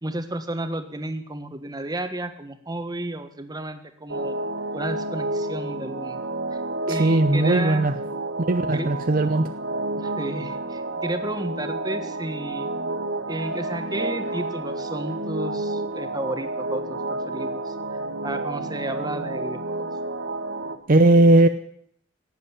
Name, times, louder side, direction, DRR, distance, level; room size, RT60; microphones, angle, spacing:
voice 1, 0.0-4.3 4.7-6.3 6.9-7.9 8.7-8.9 9.9-12.7 13.3-17.7 18.2-19.8, right 1 dB, 20° right, 8 dB, 1.5 m, -32 dB
sound 1, 4.1-20.8, right 2 dB, 85° right, 1.7 m, -30 dB
voice 2, 6.9-7.9 8.5-9.5 20.9-21.5, right 2 dB, 50° right, 9 dB, 0.7 m, -18 dB
16.5 x 8.1 x 9.7 m, 0.67 s
head